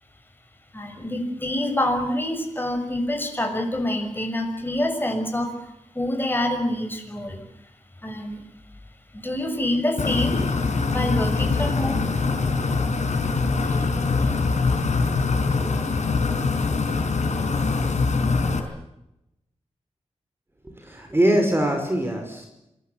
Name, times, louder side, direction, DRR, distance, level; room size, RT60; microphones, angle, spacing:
voice 1, 0.7-5.5 5.9-7.4 8.0-8.4 9.1-10.4 10.8-12.0, left 1 dB, 15° left, 5 dB, 6.2 m, -26 dB
sound 1, 10.0-18.6, left 4 dB, 75° left, 4.7 m, -23 dB
voice 2, 20.6-22.5, right 1 dB, 20° right, 4 dB, 5.3 m, -22 dB
27.0 x 20.5 x 8.3 m, 0.87 s
wide cardioid pair, 80°, 12 cm